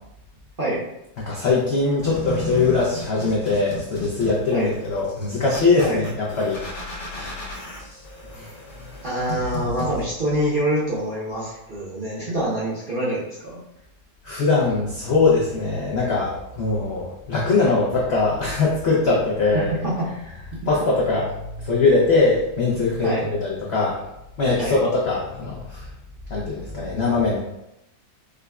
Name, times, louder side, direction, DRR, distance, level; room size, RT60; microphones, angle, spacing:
voice 1, 1.3-6.6 7.2-7.3 8.3-8.5 8.9-9.0 14.2-19.7 20.7-21.3 21.6-24.0 24.4-25.9 26.3-27.4, left 3 dB, 70° left, -5 dB, 0.6 m, -21 dB
sound 1, 2.0-10.0, left 1 dB, 85° left, 1.4 m, -34 dB
voice 2, 9.0-13.6 19.5-20.1 20.6-20.7 23.0-23.3 24.6-24.7, right 1 dB, 40° right, -9 dB, 0.8 m, -25 dB
4.9 x 2.2 x 2.3 m, 0.87 s
omnidirectional pair, 1.8 m